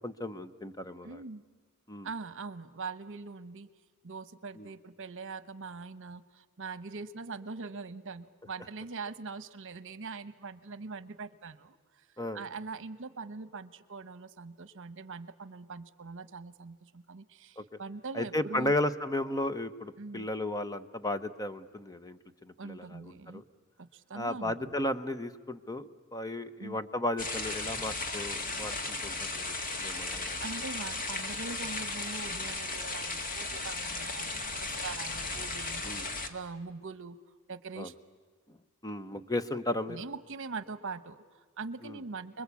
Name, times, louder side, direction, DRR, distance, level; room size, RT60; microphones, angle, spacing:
voice 1, 0.0-1.2 1.9-2.1 4.6-4.7 12.2-12.4 17.6-17.7 18.1-23.4 24.1-30.4 35.8-36.0 37.8-37.9 38.8-40.0 41.8-42.0, left 1 dB, 15° left, 11 dB, 0.9 m, -35 dB
voice 2, 1.0-1.4 2.0-3.7 4.0-12.1 12.3-18.8 20.0-20.3 22.6-23.4 23.8-24.7 26.6-26.8 30.4-37.2 37.5-37.9 39.9-42.4, right 4 dB, 65° right, 13 dB, 1.1 m, -42 dB
sound 1, 27.2-36.3, left 3 dB, 40° left, 1.9 m, -36 dB
29.5 x 22.0 x 8.5 m, 1.5 s
head